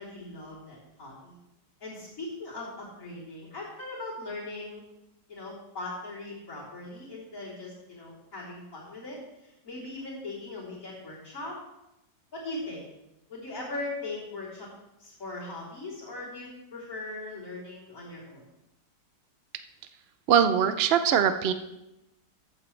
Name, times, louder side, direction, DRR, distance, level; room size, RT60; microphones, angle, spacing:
voice 1, 0.0-1.4 1.8-4.8 5.3-11.6 12.3-12.9 13.3-14.7 15.0-18.4, left 2 dB, 45° left, -6 dB, 4.1 m, -39 dB
voice 2, 20.3-21.5, right 8 dB, 65° right, 10 dB, 0.6 m, -22 dB
14.0 x 9.2 x 3.3 m, 0.90 s
omnidirectional pair, 1.9 m